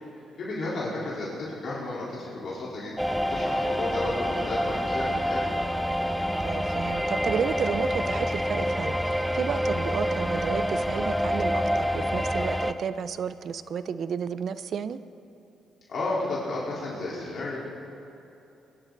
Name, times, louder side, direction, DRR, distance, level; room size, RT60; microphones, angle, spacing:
voice 1, 0.4-2.9 3.3-5.4 15.9-17.6, left 2 dB, 55° left, -7 dB, 3.9 m, -32 dB
sound 1, 3.0-12.7, equal, ahead, 0.7 m, -27 dB
voice 2, 6.4-15.0, right 7 dB, 60° right, 14 dB, 0.6 m, -32 dB
22.5 x 11.5 x 4.0 m, 2.9 s
cardioid pair, 90°, 0 cm